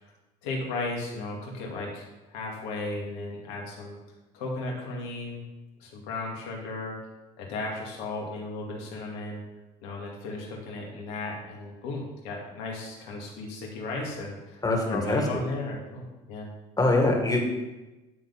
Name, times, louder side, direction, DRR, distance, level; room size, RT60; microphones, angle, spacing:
voice 1, 0.4-4.0 4.3-5.4 5.8-6.9 7.4-9.4 9.8-14.6 14.9-16.5, left 2 dB, 80° left, -2 dB, 2.3 m, -35 dB
voice 2, 14.6-15.2 16.8-17.4, left 2 dB, 20° left, 1 dB, 2.1 m, -23 dB
11.0 x 4.0 x 5.4 m, 1.1 s
supercardioid pair, 80°, 17 cm